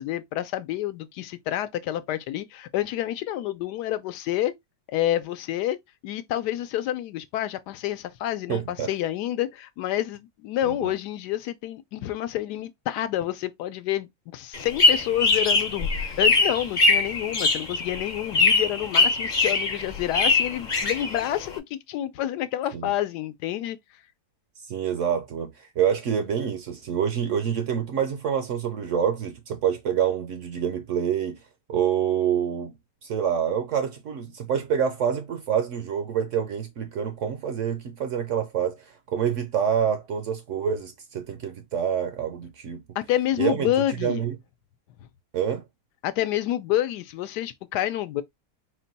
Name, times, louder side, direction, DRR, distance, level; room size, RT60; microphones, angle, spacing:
voice 1, 0.0-4.5 4.9-5.8 6.0-23.8 43.0-44.2 46.0-48.2, left 13 dB, 85° left, 1.2 m, -28 dB
voice 2, 8.5-8.9 10.7-10.9 22.7-22.9 24.6-31.4 31.7-32.7 33.0-42.8 43.4-43.7 44.0-44.4 45.3-45.6, right 8 dB, 65° right, 0.8 m, -27 dB
sound 1, 14.5-21.6, left 3 dB, 45° left, 0.6 m, -22 dB
4.4 x 2.2 x 4.0 m
omnidirectional pair, 1.7 m